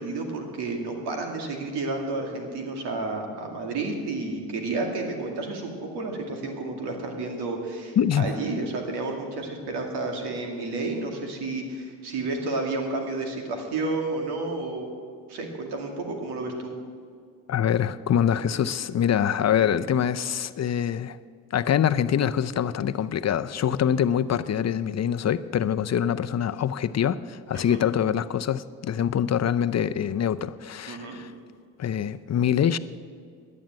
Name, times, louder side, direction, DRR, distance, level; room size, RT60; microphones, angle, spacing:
voice 1, 0.0-14.9 15.3-16.7 27.5-27.8 30.9-31.2, right 3 dB, 85° right, 2 dB, 2.3 m, -31 dB
voice 2, 8.0-8.3 17.5-21.2 21.5-31.3 31.8-32.8, left 9 dB, 45° left, 13 dB, 0.6 m, -24 dB
11.0 x 9.4 x 8.9 m, 2.1 s
cardioid pair, 80°, 39 cm